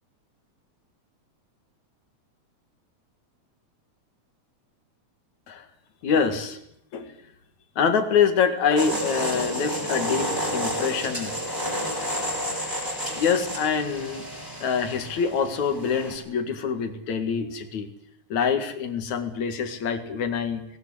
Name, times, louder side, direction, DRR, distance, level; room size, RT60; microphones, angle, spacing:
voice 1, 6.0-6.6 6.9-7.1 7.8-11.3 13.1-14.2 14.6-17.9 18.3-20.7, left 6 dB, 70° left, 9 dB, 3.3 m, -25 dB
sound 1, 8.8-16.1, equal, 15° right, 7.1 m, -30 dB
19.5 x 18.5 x 9.9 m, 0.73 s
omnidirectional pair, 3.4 m